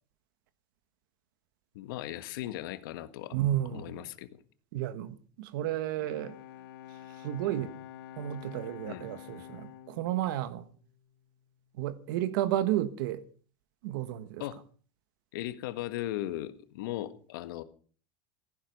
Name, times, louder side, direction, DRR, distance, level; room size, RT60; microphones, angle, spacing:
voice 1, 1.7-3.3 3.7-4.4 8.9-9.0 14.4-14.6 15.3-17.6, left 14 dB, 65° left, 1.7 m, -37 dB
voice 2, 3.3-4.0 4.7-6.4 7.2-7.7 8.2-10.7 11.8-13.2 13.8-14.4, right 13 dB, 65° right, 1.5 m, -32 dB
Bowed string instrument, 5.9-11.5, left 11 dB, 85° left, 1.4 m, -48 dB
15.5 x 15.0 x 5.4 m
supercardioid pair, 175°, 12 cm